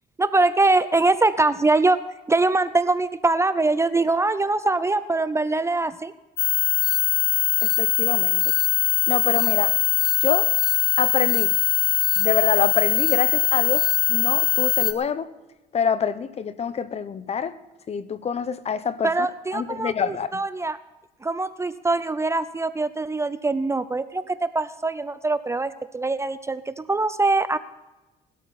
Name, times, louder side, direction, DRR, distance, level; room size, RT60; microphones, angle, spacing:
voice 1, 0.2-2.0 2.3-6.1 19.0-20.8 21.2-27.6, right 3 dB, 15° right, 0.5 m, -23 dB
sound 1, 6.4-14.9, left 14 dB, 65° left, 1.1 m, -21 dB
voice 2, 7.6-8.5 9.1-9.8 10.2-10.5 11.0-11.6 12.2-15.3 15.7-17.6 17.9-19.1 19.5-20.4, left 7 dB, 40° left, 0.9 m, -26 dB
21.0 x 12.5 x 4.2 m
cardioid pair, 110°, 17 cm